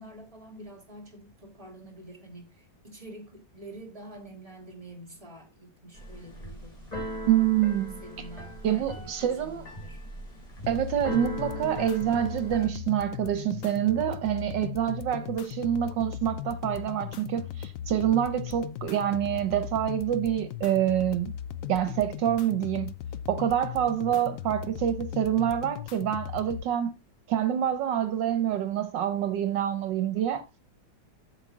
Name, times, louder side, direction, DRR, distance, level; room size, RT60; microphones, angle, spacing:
voice 1, 0.0-6.8 8.0-10.0 15.2-15.4 24.1-24.5, right 1 dB, 20° right, 2.9 m, -47 dB
Keyboard (musical), 5.9-12.7, equal, 20° left, 3.7 m, -40 dB
voice 2, 7.3-8.0 8.6-9.6 10.7-21.3 21.7-22.9 23.3-26.9 27.3-30.4, right 10 dB, 75° right, 1.5 m, -26 dB
sound 1, 10.6-26.6, left 10 dB, 70° left, 0.8 m, -38 dB
8.2 x 5.2 x 7.3 m
omnidirectional pair, 2.0 m